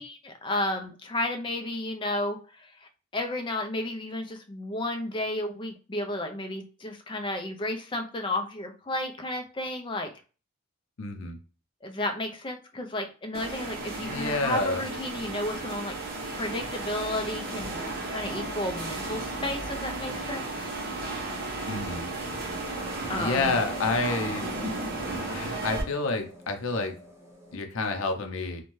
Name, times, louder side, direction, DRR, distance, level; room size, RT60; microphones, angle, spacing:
voice 1, 0.0-10.1 11.8-16.0 16.4-17.8 18.1-21.0 23.1-23.4, left 1 dB, 25° left, 4 dB, 0.4 m, -32 dB
voice 2, 11.0-11.4 14.1-14.8 21.7-22.1 23.2-24.5 25.3-26.9 27.5-28.6, left 3 dB, 80° left, 5 dB, 0.6 m, -29 dB
sound 1, 13.3-25.8, right 2 dB, 50° right, 0.7 m, -34 dB
sound 2, 17.0-27.6, equal, 15° right, 0.7 m, -48 dB
2.6 x 2.2 x 3.1 m, 0.35 s
head